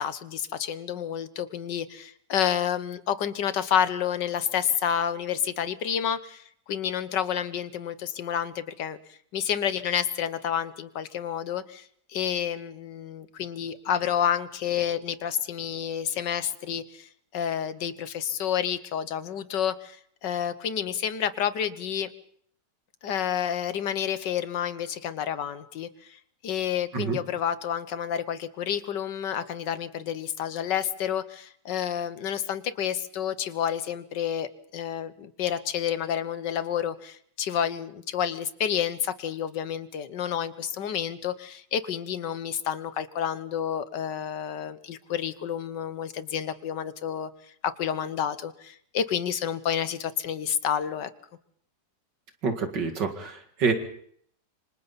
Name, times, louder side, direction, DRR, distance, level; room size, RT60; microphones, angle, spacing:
voice 1, 0.0-22.1 23.0-47.3 47.6-51.1, left 9 dB, 90° left, 12 dB, 1.7 m, -29 dB
voice 2, 52.4-53.7, right 5 dB, 85° right, 5 dB, 2.8 m, -27 dB
27.0 x 25.5 x 4.1 m, 0.64 s
omnidirectional pair, 1.8 m